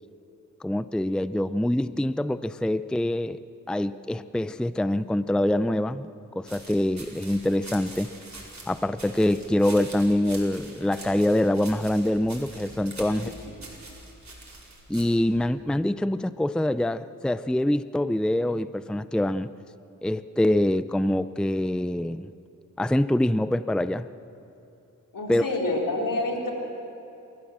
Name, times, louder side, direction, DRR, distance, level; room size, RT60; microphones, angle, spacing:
voice 1, 0.6-3.4 3.7-6.1 6.3-8.1 8.7-13.3 14.9-19.5 20.0-22.3 22.8-24.1 25.3-25.4, left 1 dB, 5° left, 14 dB, 0.5 m, -25 dB
sound 1, 6.5-15.2, right 2 dB, 55° right, 4.9 m, -44 dB
voice 2, 25.1-26.5, left 2 dB, 75° left, 0 dB, 3.9 m, -28 dB
27.5 x 14.0 x 7.4 m, 2.9 s
cardioid pair, 45°, 33 cm